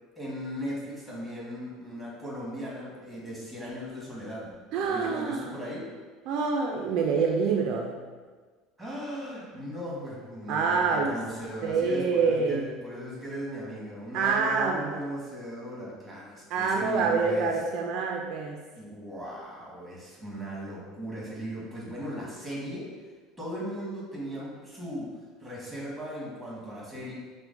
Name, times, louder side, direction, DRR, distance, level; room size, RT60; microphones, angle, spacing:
voice 1, 0.1-5.9 8.8-17.5 18.7-22.9 23.4-27.1, equal, 5° right, -6 dB, 1.4 m, -38 dB
voice 2, 4.7-5.5 6.3-8.0 10.5-11.2 11.6-12.7 14.1-15.0 16.5-18.6, right 5 dB, 60° right, 1 dB, 0.3 m, -26 dB
5.7 x 2.1 x 2.5 m, 1.4 s
supercardioid pair, 110°, 0 cm